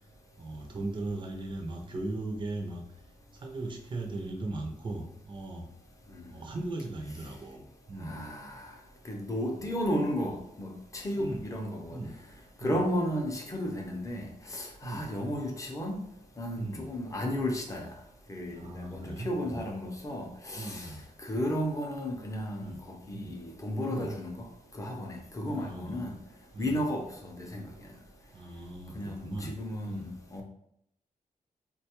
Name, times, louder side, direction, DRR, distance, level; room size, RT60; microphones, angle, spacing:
voice 1, 0.4-2.8 3.3-5.7 6.3-8.2 9.5-9.7 11.2-11.4 11.9-12.1 12.6-12.8 14.8-15.1 16.5-16.9 18.5-19.6 20.5-21.0 22.6-22.8 23.1-23.4 23.9-24.1 25.5-26.0 26.5-26.8 28.3-29.5 29.8-30.1, right 2 dB, 35° right, 0.5 m, -38 dB
voice 2, 8.0-8.7 9.1-12.0 12.6-16.0 16.4-17.9 18.3-20.9 21.2-24.5 24.7-26.1 26.6-27.6 29.0-30.4, equal, 20° left, 0.5 m, -33 dB
4.0 x 2.2 x 2.9 m
wide cardioid pair, 155°, 14 cm